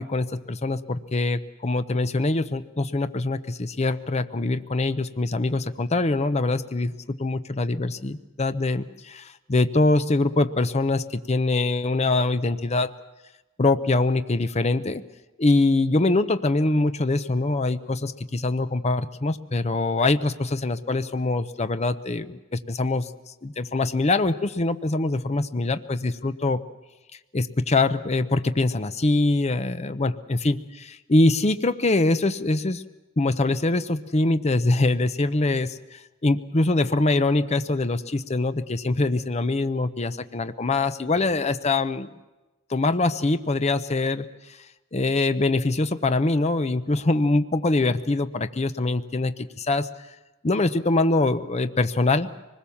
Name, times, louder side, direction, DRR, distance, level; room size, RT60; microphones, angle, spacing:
voice 1, 0.0-6.9 7.2-12.9 13.6-15.0 15.4-22.4 22.7-23.1 23.4-26.6 27.3-32.8 33.2-42.1 42.7-44.3 44.9-49.9 50.4-52.3, left 2 dB, 30° left, 11 dB, 0.7 m, -23 dB
24.5 x 20.5 x 7.1 m, 1.1 s
head